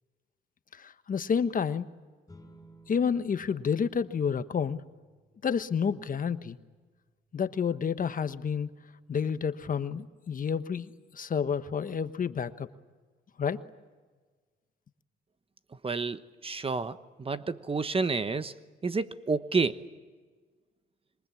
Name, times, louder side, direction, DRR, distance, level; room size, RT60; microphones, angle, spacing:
voice 1, 0.7-1.9 2.9-4.8 5.4-6.6 7.3-8.7 9.1-10.9 11.1-12.7 13.4-13.6, left 6 dB, 45° left, 11 dB, 1.2 m, -29 dB
sound 1, 2.3-13.0, right 1 dB, 15° left, 7.3 m, -62 dB
voice 2, 15.8-18.5 18.8-19.8, right 4 dB, 30° right, 13 dB, 1.1 m, -30 dB
26.5 x 23.5 x 8.5 m, 1.4 s
cardioid pair, 90°, 20 cm